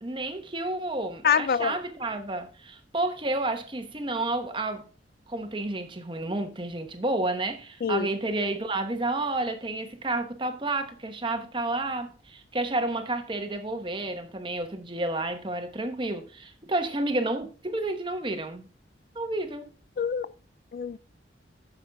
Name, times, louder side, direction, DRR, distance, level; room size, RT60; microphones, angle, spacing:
voice 1, 0.0-4.8 5.3-18.7 19.1-19.7, right 2 dB, 25° right, 1.0 m, -30 dB
voice 2, 1.2-1.8 7.8-8.1 20.0-20.3 20.7-21.0, left 6 dB, 55° left, 0.3 m, -25 dB
9.4 x 7.2 x 3.5 m
head